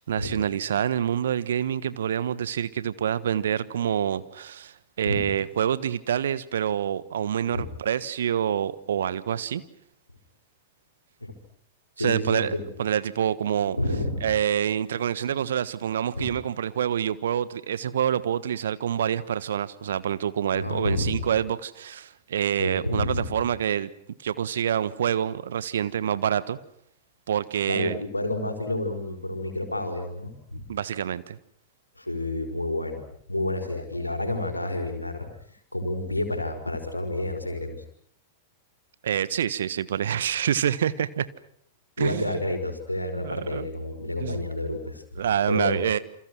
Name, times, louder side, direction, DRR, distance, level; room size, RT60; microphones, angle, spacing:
voice 1, 0.0-9.6 12.0-13.8 14.2-23.9 24.2-26.6 27.3-28.0 30.7-31.4 39.0-41.3 42.0-42.4 43.2-43.7 44.2-44.5 45.2-46.0, right 9 dB, 65° right, 16 dB, 1.4 m, -27 dB
voice 2, 12.0-12.7 13.7-14.3 16.1-16.3 20.5-21.3 22.5-23.3 27.7-30.7 32.0-33.0 33.3-35.3 35.7-37.8 42.0-45.0 45.5-45.8, left 1 dB, 90° left, 5 dB, 4.9 m, -29 dB
29.0 x 27.5 x 6.3 m, 0.64 s
figure-of-eight pair, 95°, 0 cm